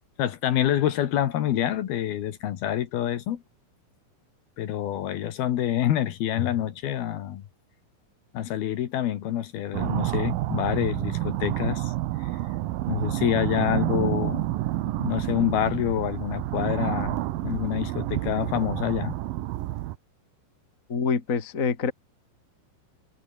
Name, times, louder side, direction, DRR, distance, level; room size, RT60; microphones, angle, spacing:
voice 1, 0.2-3.4 4.6-7.4 8.3-11.9 12.2-12.3 12.9-14.4 15.0-17.2 17.4-19.2, left 11 dB, 65° left, 3.1 m, -27 dB
sound 1, 9.7-20.0, right 16 dB, 90° right, 2.0 m, -29 dB
voice 2, 20.9-21.9, left 5 dB, 35° left, 1.2 m, -26 dB
omnidirectional pair, 5.4 m